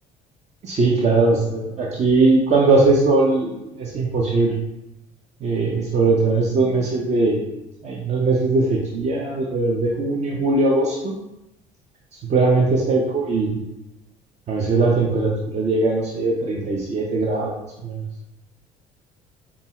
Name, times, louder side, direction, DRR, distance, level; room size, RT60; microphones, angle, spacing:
voice 1, 0.6-4.6 5.4-7.4 7.8-11.2 12.2-13.6 14.5-17.5 17.8-18.1, right 3 dB, 40° right, -2 dB, 0.6 m, -20 dB
5.2 x 2.4 x 2.9 m, 0.92 s
hypercardioid pair, 70°, 18 cm